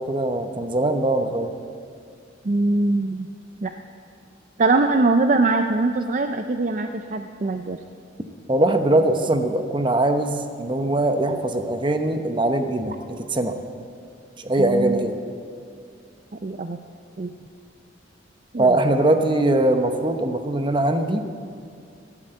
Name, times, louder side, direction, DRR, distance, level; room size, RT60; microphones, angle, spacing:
voice 1, 0.0-1.5 8.5-12.9 13.3-13.6 14.4-15.2 18.6-21.2, right 1 dB, 25° right, 7 dB, 0.9 m, -21 dB
voice 2, 2.4-3.3 3.6-3.7 4.6-7.8 14.6-15.1 16.4-16.8 17.2-17.3 18.5-18.8, right 3 dB, 40° right, 7 dB, 0.5 m, -22 dB
13.0 x 11.5 x 7.9 m, 2.3 s
head